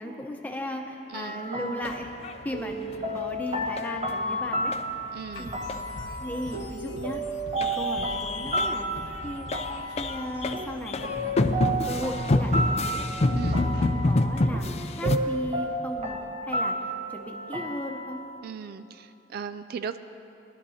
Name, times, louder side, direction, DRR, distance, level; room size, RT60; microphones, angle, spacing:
voice 1, 0.0-2.1 2.4-4.7 5.4-5.6 6.2-7.2 7.6-8.9 9.2-9.5 10.0-13.1 13.6-16.2 16.4-16.7 17.1-18.2, left 1 dB, 10° left, 1 dB, 0.9 m, -36 dB
sound 1, 1.1-18.4, right 1 dB, 35° right, 0.8 m, -32 dB
voice 2, 1.1-1.4 5.1-5.5 13.3-13.7 18.4-20.0, right 6 dB, 55° right, 11 dB, 0.3 m, -37 dB
sound 2, 1.9-4.3 4.7-4.8 5.2-5.3 5.5-5.8 6.0-6.1 6.3-7.1 7.4-15.2, left 2 dB, 35° left, 0.4 m, -28 dB
sound 3, 5.3-16.2, left 1 dB, 85° left, 1.2 m, -46 dB
19.5 x 11.5 x 2.8 m, 2.8 s
head